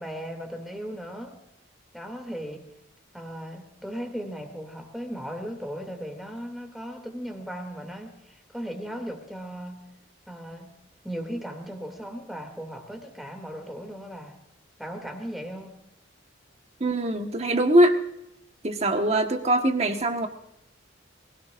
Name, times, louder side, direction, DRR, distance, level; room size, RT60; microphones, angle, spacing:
voice 1, 0.0-1.4 1.9-2.7 3.1-9.8 10.3-10.7 11.0-14.4 14.8-15.7, equal, ahead, 4 dB, 2.6 m, -37 dB
voice 2, 16.8-18.0 18.6-20.3, right 1 dB, 35° right, 5 dB, 1.4 m, -22 dB
23.5 x 17.0 x 2.6 m, 0.83 s
head